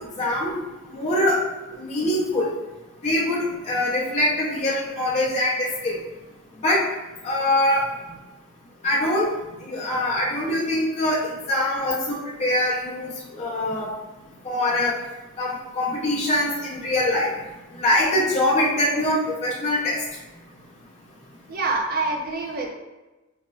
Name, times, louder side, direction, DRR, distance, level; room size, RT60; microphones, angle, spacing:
voice 1, 0.2-0.6 0.9-1.4 1.8-2.5 3.0-6.0 6.6-6.8 7.2-7.8 8.8-9.3 9.7-13.9 14.4-15.0 15.4-17.3 17.8-20.0, left 1 dB, 30° left, -5 dB, 0.4 m, -23 dB
voice 2, 21.5-22.7, right 3 dB, 45° right, 1 dB, 0.5 m, -26 dB
4.2 x 2.1 x 2.2 m, 1.1 s
head